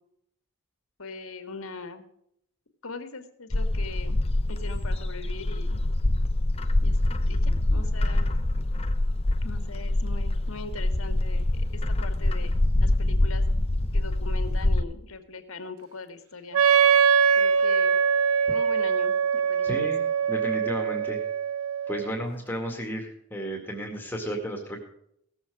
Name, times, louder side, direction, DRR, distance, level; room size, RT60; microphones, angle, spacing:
voice 1, 1.0-2.1 2.8-4.2 4.5-5.8 6.8-7.0 7.2-8.3 9.4-12.5 12.8-13.4 13.9-16.6 17.4-18.0 18.5-19.9, left 3 dB, 70° left, 7 dB, 1.8 m, -40 dB
Bird, 3.5-14.8, left 1 dB, 25° left, 0.7 m, -25 dB
Wind instrument woodwind instrument, 16.5-22.2, right 6 dB, 75° right, 0.4 m, -23 dB
voice 2, 19.6-20.0 20.3-21.2 21.9-24.8, equal, 10° left, 1 dB, 2.0 m, -33 dB
18.0 x 7.4 x 4.8 m, 0.73 s
head